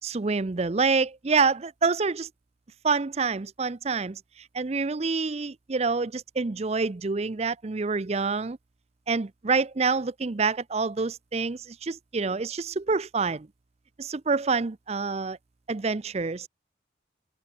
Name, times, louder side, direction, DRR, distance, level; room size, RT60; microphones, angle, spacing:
voice 1, 0.0-2.3 2.8-4.2 4.5-8.6 9.1-13.5 14.0-15.4 15.7-16.5, right 4 dB, 35° right, 0.5 m, -27 dB
head